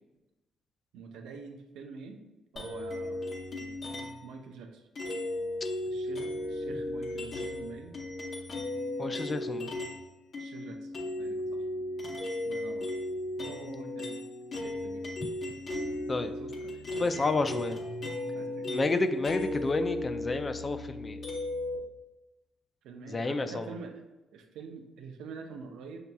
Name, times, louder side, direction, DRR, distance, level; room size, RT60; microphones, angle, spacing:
voice 1, 0.9-2.2 2.5-3.2 3.6-3.7 4.2-4.9 5.9-8.0 9.0-9.5 10.4-11.6 12.4-12.9 13.4-14.2 14.6-15.0 15.5-17.6 18.3-18.7 22.8-24.0 24.3-26.0, right 5 dB, 85° right, 4 dB, 0.5 m, -46 dB
sound 1, 2.6-4.3 5.0-10.0 10.3-21.8, left 1 dB, 50° left, 0.8 m, -36 dB
voice 2, 9.0-9.7 15.2-15.3 16.1-16.4 17.0-17.8 18.7-21.2 23.1-23.8, left 3 dB, 30° left, 9 dB, 0.3 m, -30 dB
5.8 x 2.7 x 2.2 m, 1.0 s
cardioid pair, 90°, 0 cm